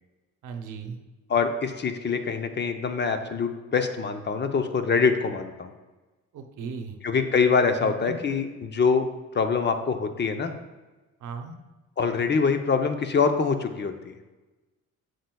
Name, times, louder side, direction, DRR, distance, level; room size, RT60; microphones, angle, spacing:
voice 1, 0.4-1.0 6.3-7.0 7.8-8.2 11.2-11.6, right 5 dB, 80° right, 6 dB, 0.8 m, -37 dB
voice 2, 1.3-5.7 7.0-9.1 9.3-10.6 12.0-14.1, left 5 dB, 35° left, 7 dB, 0.6 m, -24 dB
7.6 x 6.6 x 2.3 m, 1.2 s
cardioid pair, 90°, 30 cm